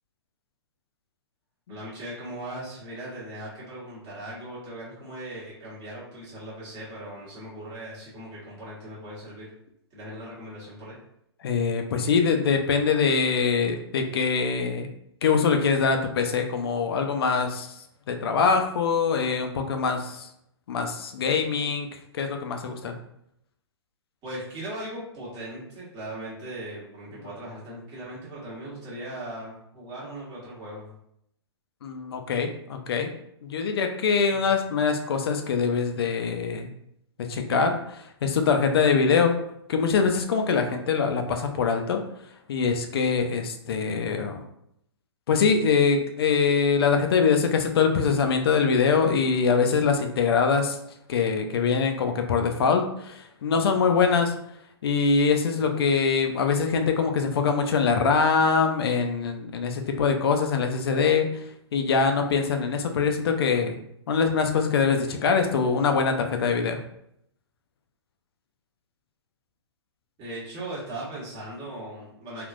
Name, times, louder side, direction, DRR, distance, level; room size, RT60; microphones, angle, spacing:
voice 1, 1.7-9.5 9.9-11.0 24.2-30.9 34.3-34.5 70.2-72.5, right 1 dB, 30° right, -8 dB, 1.2 m, -38 dB
voice 2, 11.4-14.9 15.2-17.7 18.1-20.3 20.7-21.9 22.1-22.9 31.8-33.1 33.4-36.7 37.3-39.3 39.7-42.0 42.5-44.4 45.3-50.8 51.1-54.3 54.8-61.4 61.7-63.8 64.1-66.8, left 5 dB, 60° left, 5 dB, 0.5 m, -23 dB
3.5 x 2.4 x 2.4 m, 0.76 s
hypercardioid pair, 125°, 14 cm